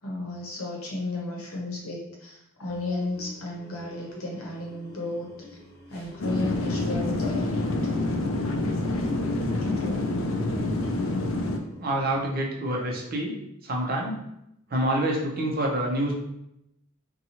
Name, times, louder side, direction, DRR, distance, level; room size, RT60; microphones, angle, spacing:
voice 1, 0.0-5.6 5.9-7.9 9.6-10.0, left 2 dB, 90° left, -2 dB, 0.8 m, -34 dB
sound 1, 2.6-12.3, left 1 dB, 50° left, 0.8 m, -48 dB
sound 2, 6.2-11.6, left 2 dB, 65° left, 0.4 m, -27 dB
voice 2, 11.8-13.4 13.6-14.2 14.7-16.1, right 1 dB, 45° right, -1 dB, 0.6 m, -27 dB
2.8 x 2.3 x 2.8 m, 0.81 s
head